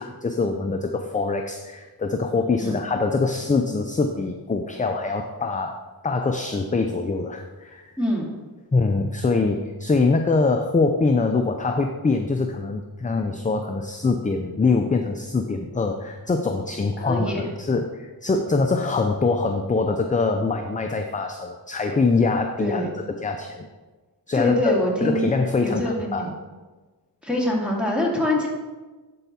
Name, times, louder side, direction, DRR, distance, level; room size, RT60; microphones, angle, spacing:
voice 1, 0.0-5.8 6.0-7.9 8.7-17.3 17.6-22.8 23.2-23.7 24.3-24.7 25.0-26.3, left 3 dB, 20° left, 5 dB, 0.5 m, -23 dB
voice 2, 8.0-8.4 17.0-17.5 22.6-22.9 24.3-25.2 25.6-26.3 27.2-28.5, left 1 dB, 5° right, -3 dB, 2.3 m, -24 dB
11.0 x 4.6 x 4.2 m, 1.3 s
wide cardioid pair, 80°, 40 cm